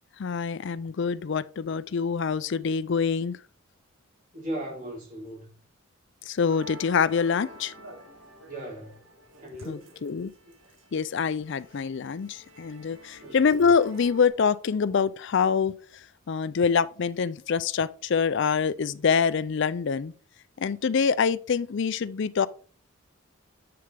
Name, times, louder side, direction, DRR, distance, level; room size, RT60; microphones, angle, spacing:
voice 1, 0.2-3.4 6.3-7.7 9.7-10.3 10.9-15.7 16.3-20.1 20.6-22.5, left 6 dB, 55° left, 0.4 m, -25 dB
voice 2, 4.3-5.6 8.4-9.0 9.4-9.9 13.2-13.4, right 1 dB, 40° right, 3.8 m, -37 dB
Musical instrument, 6.5-14.3, right 1 dB, 60° right, 2.6 m, -49 dB
7.8 x 6.9 x 3.4 m
head